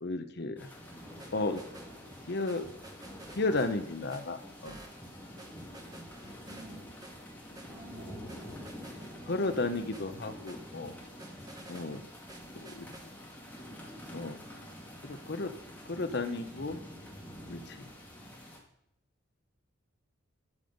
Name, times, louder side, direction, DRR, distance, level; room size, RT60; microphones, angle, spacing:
voice 1, 0.0-0.7 1.3-1.6 2.3-2.7 3.4-4.8 9.3-10.9 11.7-12.0 12.5-12.9 14.1-14.4 15.0-15.5 15.9-16.8 17.5-17.9, left 2 dB, 50° left, 9 dB, 0.8 m, -33 dB
sound 1, 0.6-18.6, equal, 10° left, 2.0 m, -47 dB
sound 2, 0.8-13.6, right 1 dB, 15° right, 1.2 m, -53 dB
voice 2, 6.4-6.9 7.7-8.8, right 1 dB, 55° right, -4 dB, 2.6 m, -53 dB
11.5 x 7.0 x 5.2 m, 0.79 s
head